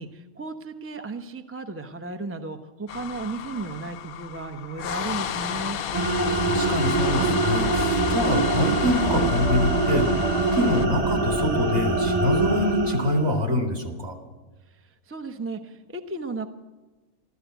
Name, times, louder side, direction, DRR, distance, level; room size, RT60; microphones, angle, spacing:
voice 1, 0.0-5.8 15.1-16.5, right 3 dB, 15° right, 5 dB, 0.6 m, -34 dB
sound 1, 2.9-10.9, left 9 dB, 85° left, 1.1 m, -32 dB
sound 2, 5.9-13.4, right 3 dB, 30° right, 1.1 m, -24 dB
voice 2, 6.3-10.1 10.5-14.2, left 1 dB, 50° right, 2 dB, 2.7 m, -25 dB
13.5 x 13.0 x 8.1 m, 1.2 s
omnidirectional pair, 1.5 m